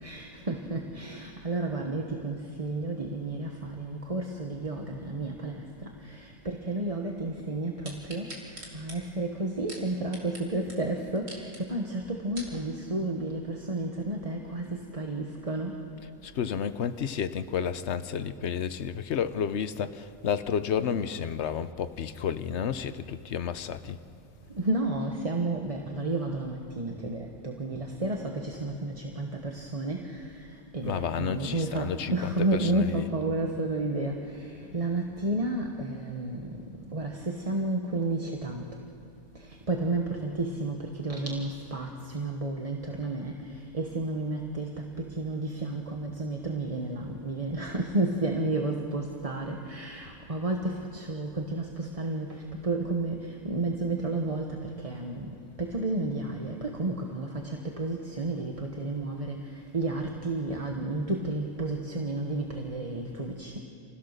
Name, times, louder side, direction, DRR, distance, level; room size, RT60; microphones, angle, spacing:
voice 1, 0.0-8.3 8.7-15.8 24.6-30.3 30.7-36.6 36.9-38.6 39.4-43.3 43.7-55.3 55.6-59.4 59.7-63.6, right 2 dB, 30° right, 2 dB, 1.3 m, -31 dB
sound 1, 7.8-10.4 10.7-10.8 11.2-11.6 12.1-12.6 13.2-13.3, right 1 dB, 55° right, 3.3 m, -44 dB
voice 2, 16.2-24.0 30.8-33.1, left 7 dB, 60° left, 11 dB, 1.1 m, -31 dB
28.5 x 16.0 x 6.7 m, 2.6 s
omnidirectional pair, 1.3 m